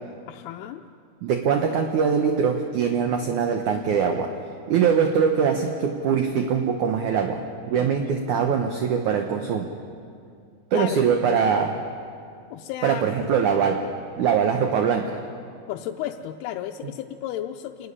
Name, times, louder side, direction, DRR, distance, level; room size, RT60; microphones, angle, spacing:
voice 1, 0.3-0.8 7.7-8.4 10.7-11.0 12.5-13.1 15.7-17.9, left 12 dB, 85° left, 3 dB, 2.6 m, -33 dB
voice 2, 1.2-4.3 4.7-9.7 10.7-11.8 12.8-13.8 14.2-15.2, right 6 dB, 70° right, 4 dB, 2.0 m, -22 dB
28.0 x 12.5 x 9.8 m, 2.4 s
omnidirectional pair, 4.6 m